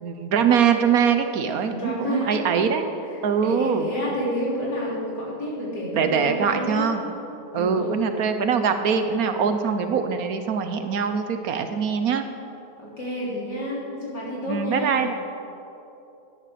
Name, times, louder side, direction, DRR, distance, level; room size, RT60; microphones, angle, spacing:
voice 1, 0.0-2.8 3.2-3.9 5.9-7.0 7.5-12.2 14.5-15.1, right 7 dB, 65° right, 8 dB, 1.2 m, -23 dB
voice 2, 1.5-2.7 3.1-6.9 7.5-8.1 12.8-15.0, equal, 85° left, -6 dB, 4.1 m, -30 dB
12.5 x 10.0 x 6.6 m, 2.9 s
omnidirectional pair, 1.8 m